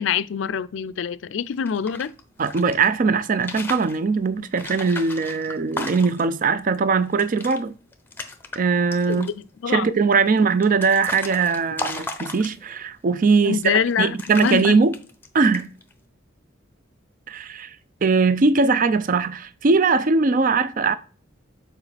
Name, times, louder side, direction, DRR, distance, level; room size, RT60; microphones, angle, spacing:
voice 1, 0.0-2.1 9.1-9.3 9.6-9.9 13.4-14.1 14.4-14.8, left 7 dB, 70° left, 0.4 m, -24 dB
sound 1, 1.5-2.9 3.3-4.0 4.5-6.4 6.7-6.8 7.1-7.6 7.9-8.6 8.9-9.4 10.1-12.8 13.5-13.9 14.2-15.3 15.5-15.9, left 2 dB, 10° left, 0.7 m, -34 dB
voice 2, 2.4-7.8 8.6-9.3 9.7-14.9 15.3-15.7 17.3-17.8 18.0-20.9, right 4 dB, 45° right, 0.4 m, -20 dB
7.2 x 4.6 x 3.3 m
head